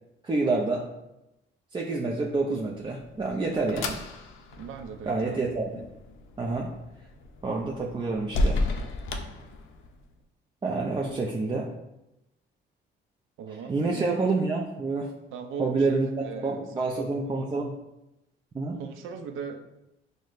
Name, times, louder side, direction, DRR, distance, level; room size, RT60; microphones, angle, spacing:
voice 1, 0.2-0.9 1.7-4.0 5.1-5.9 6.4-6.7 7.4-8.6 10.6-11.7 13.5-15.1 15.6-17.7 18.5-18.8, right 3 dB, 25° right, -1 dB, 0.4 m, -28 dB
sound 1, 2.7-10.1, left 2 dB, 80° left, 0.5 m, -33 dB
voice 2, 4.6-5.4 13.4-14.1 15.3-16.0 16.3-17.1 18.7-19.6, right 6 dB, 85° right, 6 dB, 0.5 m, -38 dB
6.1 x 2.1 x 2.4 m, 0.92 s
cardioid pair, 90°, 20 cm